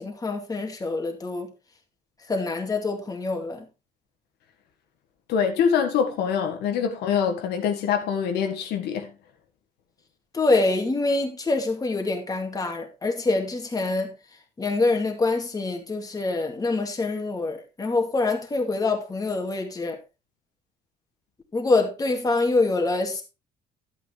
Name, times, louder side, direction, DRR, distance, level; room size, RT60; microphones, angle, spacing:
voice 1, 0.0-1.5 2.3-3.7 10.3-14.2 14.6-20.0 21.5-23.2, left 3 dB, 20° left, 2.3 m, -25 dB
voice 2, 5.3-9.1, left 7 dB, 80° left, 1.7 m, -24 dB
11.0 x 8.7 x 3.3 m
cardioid pair, 110°, 17 cm